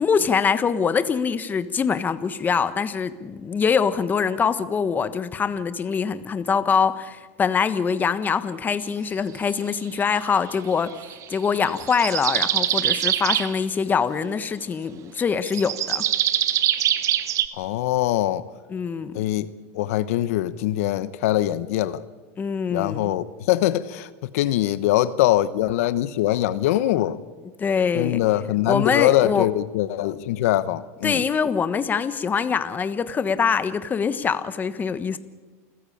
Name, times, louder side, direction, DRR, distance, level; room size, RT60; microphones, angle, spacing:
voice 1, 0.0-10.9 11.3-16.0 18.7-19.2 22.4-23.1 27.6-28.2 28.6-29.5 31.0-35.2, left 6 dB, 25° left, 1.3 m, -24 dB
sound 1, 11.0-13.5 15.5-17.5, right 11 dB, 40° right, 1.3 m, -23 dB
voice 2, 17.5-18.4 19.1-19.5 19.7-22.0 22.7-27.2 27.9-31.2, left 14 dB, 75° left, 1.0 m, -23 dB
28.5 x 15.0 x 8.7 m
supercardioid pair, 120°, 8 cm